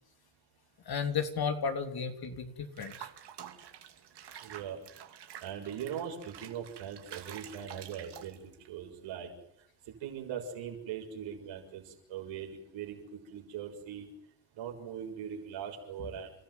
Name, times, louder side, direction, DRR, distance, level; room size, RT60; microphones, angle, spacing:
voice 1, 0.9-3.1, left 6 dB, 55° left, 6 dB, 3.3 m, -33 dB
Water / Bathtub (filling or washing), 2.8-8.7, right 9 dB, 65° right, 2.7 m, -49 dB
voice 2, 4.4-4.8 5.4-9.3 9.9-14.1 14.5-16.3, right 8 dB, 85° right, 1 dB, 6.6 m, -41 dB
29.5 x 13.5 x 9.5 m, 0.75 s
cardioid pair, 80°, 44 cm